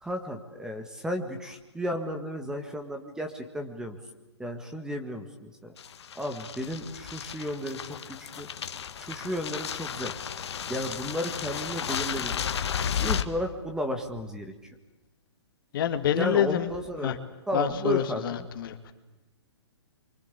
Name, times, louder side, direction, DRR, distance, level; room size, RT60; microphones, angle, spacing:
voice 1, 0.0-4.0 4.4-5.7 6.2-8.5 9.0-10.1 10.7-12.4 13.0-14.7 16.1-17.2 17.5-18.4, equal, 5° right, 5 dB, 1.7 m, -33 dB
sound 1, 5.8-13.2, left 8 dB, 65° left, 1.7 m, -33 dB
voice 2, 15.7-16.7 17.0-17.2 17.5-18.9, left 10 dB, 50° left, 7 dB, 2.2 m, -27 dB
24.5 x 24.0 x 8.4 m, 1.1 s
hypercardioid pair, 145°, 15 cm